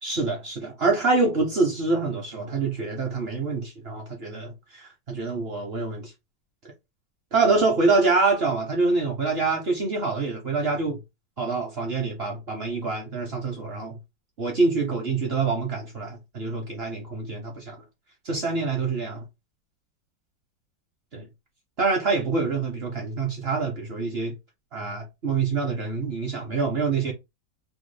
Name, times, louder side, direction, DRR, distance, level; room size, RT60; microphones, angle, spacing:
voice 1, 0.0-6.1 7.3-11.0 11.4-14.0 14.4-17.8 18.2-19.2 21.1-21.3 21.8-24.3 24.7-27.1, right 3 dB, 55° right, 0.6 m, -26 dB
3.0 x 2.3 x 3.2 m
omnidirectional pair, 2.0 m